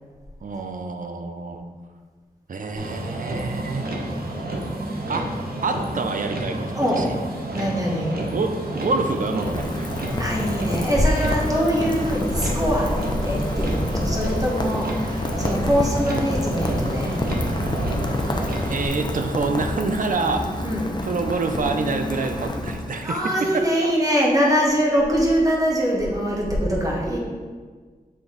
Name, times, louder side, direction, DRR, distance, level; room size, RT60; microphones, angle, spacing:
voice 1, 0.4-1.7 2.5-3.8 5.1-7.0 8.3-9.9 18.7-20.7 21.0-23.9, right 3 dB, 60° right, 6 dB, 0.6 m, -27 dB
Motor vehicle (road), 2.8-18.9, right 1 dB, 80° right, 0.9 m, -29 dB
voice 2, 7.5-8.2 10.2-17.2 20.6-20.9 23.0-27.2, equal, 25° right, -4 dB, 1.5 m, -23 dB
Rain, 8.5-23.3, left 1 dB, 30° left, 0.7 m, -29 dB
7.8 x 3.5 x 3.9 m, 1.5 s
wide cardioid pair, 70°, 15 cm